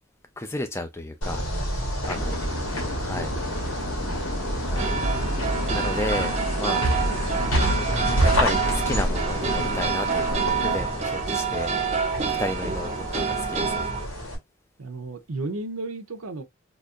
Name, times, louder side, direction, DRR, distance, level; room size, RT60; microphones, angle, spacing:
voice 1, 0.4-1.4 2.0-2.4 2.9-3.3 4.6-4.9 5.3-7.4 8.2-11.7 12.3-13.9, left 2 dB, 10° left, 0.5 m, -33 dB
sound 1, 1.2-14.3, equal, 85° left, 2.1 m, -28 dB
voice 2, 1.7-2.0 2.9-4.3 14.8-16.4, right 2 dB, 85° right, 0.7 m, -36 dB
sound 2, 2.0-10.8, left 2 dB, 55° left, 1.8 m, -34 dB
sound 3, 4.8-14.1, right 6 dB, 30° right, 0.6 m, -28 dB
4.0 x 2.9 x 2.4 m
head